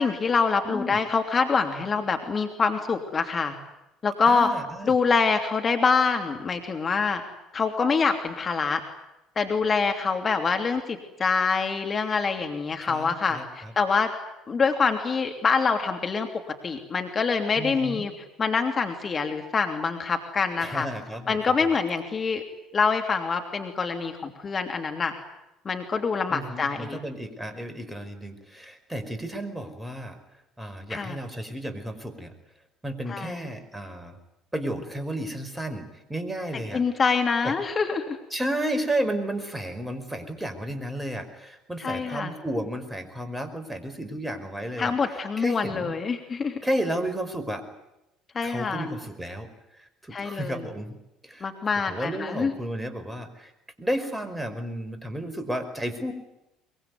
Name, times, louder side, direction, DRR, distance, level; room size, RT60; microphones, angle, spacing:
voice 1, 0.0-3.5 4.0-4.5 4.8-7.2 7.5-8.8 9.4-14.1 14.5-18.1 18.4-20.9 21.3-22.4 22.7-25.1 25.6-27.0 30.9-31.2 33.1-33.4 36.7-38.2 41.8-42.3 44.8-46.6 48.3-48.9 50.1-50.7 51.4-52.5, left 5 dB, 35° left, 5 dB, 3.0 m, -25 dB
voice 2, 0.6-1.0 4.3-4.9 12.8-13.7 17.6-18.1 20.6-21.4 21.6-21.7 26.3-30.2 30.6-32.3 32.8-34.2 34.5-36.8 37.4-37.6 38.3-45.9 46.6-47.6 48.4-49.5 49.7-51.0 51.2-51.5 51.9-53.5 53.8-56.1, right 1 dB, 10° right, 9 dB, 5.2 m, -32 dB
23.5 x 22.0 x 9.7 m, 0.92 s
hypercardioid pair, 60°, 0 cm